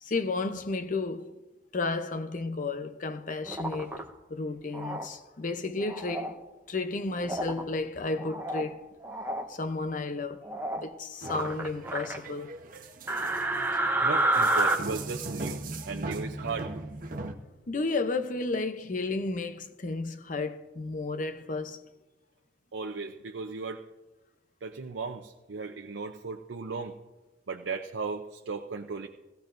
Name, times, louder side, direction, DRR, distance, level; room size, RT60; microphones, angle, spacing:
voice 1, 0.0-1.4 1.7-4.0 4.3-6.4 6.7-8.9 9.5-10.5 10.8-12.5 17.7-21.8, left 3 dB, 45° left, 0.7 m, -32 dB
sound 1, 3.5-4.0 4.7-5.1 5.8-6.3 7.2-7.6 8.1-8.7 9.0-9.4 10.4-10.9 11.2-12.2 13.1-14.8, right 2 dB, 10° right, 0.9 m, -29 dB
sound 2, 11.2-17.3, right 2 dB, 50° right, 0.9 m, -39 dB
voice 2, 14.0-16.7 22.7-23.8 24.6-26.9 27.5-29.1, right 4 dB, 85° right, 0.6 m, -36 dB
18.0 x 15.0 x 2.6 m
head